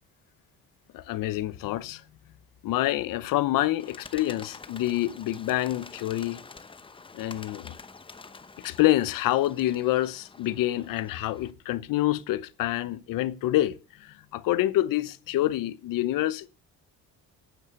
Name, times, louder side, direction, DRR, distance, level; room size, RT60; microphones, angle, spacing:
voice 1, 0.9-2.0 2.6-6.4 7.1-7.7 8.6-16.5, left 15 dB, 85° left, 1.1 m, -27 dB
Bird, 3.8-11.5, left 4 dB, 15° left, 0.8 m, -48 dB
9.7 x 9.3 x 6.7 m
cardioid pair, 145°, 33 cm